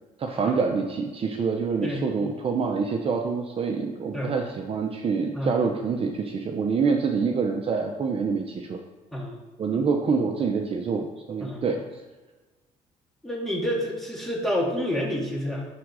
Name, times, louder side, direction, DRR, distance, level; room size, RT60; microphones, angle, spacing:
voice 1, 0.2-8.8 9.6-11.8, right 5 dB, 40° right, 3 dB, 0.8 m, -26 dB
voice 2, 13.2-15.7, equal, ahead, -3 dB, 2.2 m, -28 dB
11.0 x 3.7 x 4.8 m, 1.2 s
cardioid pair, 100°, 14 cm